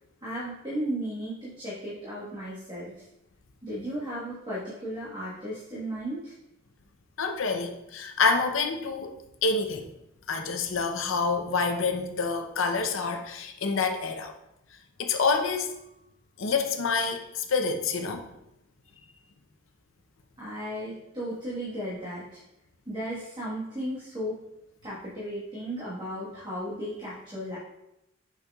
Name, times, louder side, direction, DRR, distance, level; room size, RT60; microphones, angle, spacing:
voice 1, 0.2-2.9 3.6-6.3 20.4-22.4 22.9-24.3 24.8-27.6, equal, 20° right, -9 dB, 1.4 m, -35 dB
voice 2, 7.2-9.2 9.4-9.9 10.3-14.3 15.0-15.7 16.4-18.2, left 4 dB, 65° left, 5 dB, 0.7 m, -27 dB
6.6 x 6.1 x 2.3 m, 0.86 s
head